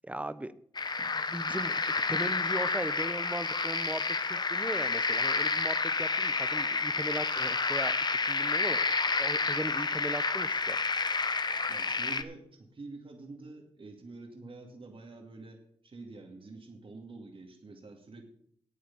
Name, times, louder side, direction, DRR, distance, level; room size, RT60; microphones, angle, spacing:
voice 1, 0.1-0.5 1.0-1.8 2.1-10.8, right 1 dB, 10° right, 14 dB, 0.9 m, -38 dB
sound 1, 0.7-12.2, left 4 dB, 40° left, 0.9 m, -30 dB
voice 2, 11.7-18.2, right 3 dB, 50° right, 2 dB, 2.4 m, -47 dB
9.5 x 8.9 x 7.1 m, 0.66 s
cardioid pair, 50°, 11 cm